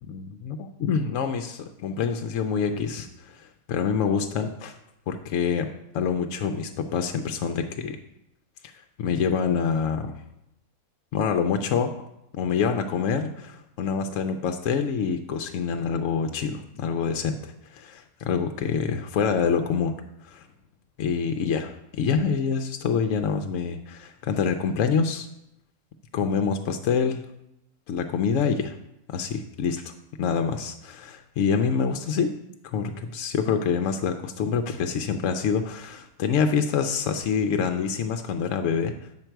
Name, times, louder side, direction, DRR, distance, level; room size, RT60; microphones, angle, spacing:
voice 1, 0.0-4.8 5.1-5.7 5.9-8.0 8.6-8.7 9.0-10.1 11.1-11.9 12.4-20.0 20.2-20.5 21.0-25.3 26.1-27.2 27.9-28.8 29.1-29.9 30.2-32.3 32.6-38.9, left 6 dB, 70° left, 6 dB, 0.9 m, -26 dB
8.8 x 5.9 x 4.5 m, 0.84 s
omnidirectional pair, 1.5 m